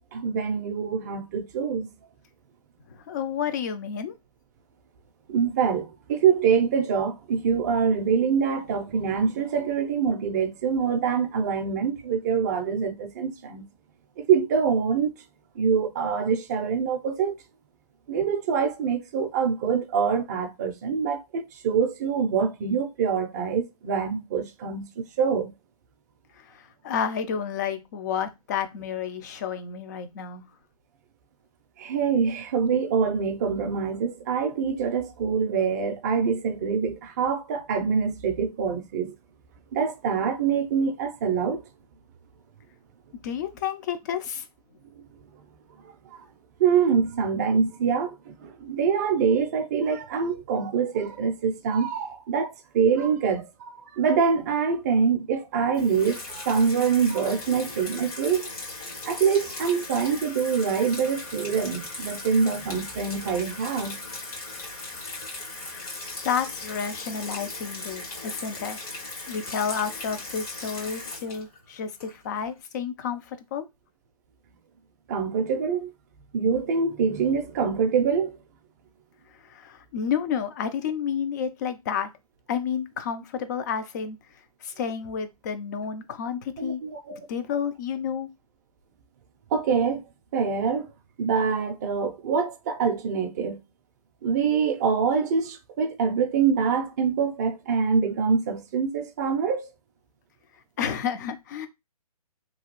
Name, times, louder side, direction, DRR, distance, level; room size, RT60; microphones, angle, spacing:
voice 1, 0.1-1.9 5.3-13.7 14.3-15.2 15.6-17.4 18.1-25.5 31.8-39.1 39.7-41.6 46.1-46.3 46.6-58.5 59.0-64.0 75.1-75.9 76.3-78.3 86.6-87.2 89.5-90.0 90.3-90.9 91.2-93.6 94.2-99.7, right 6 dB, 25° right, 0.5 m, -25 dB
voice 2, 2.9-4.1 26.4-30.4 43.2-44.5 65.7-65.9 66.2-68.8 69.3-73.7 79.4-82.1 82.5-84.2 84.6-86.8 87.3-88.3 100.8-101.7, left 7 dB, 30° left, 0.4 m, -30 dB
Water tap faucet / Sink (filling or washing), 55.7-72.5, left 2 dB, 65° left, 1.8 m, -38 dB
2.9 x 2.3 x 2.9 m
hypercardioid pair, 140°, 20 cm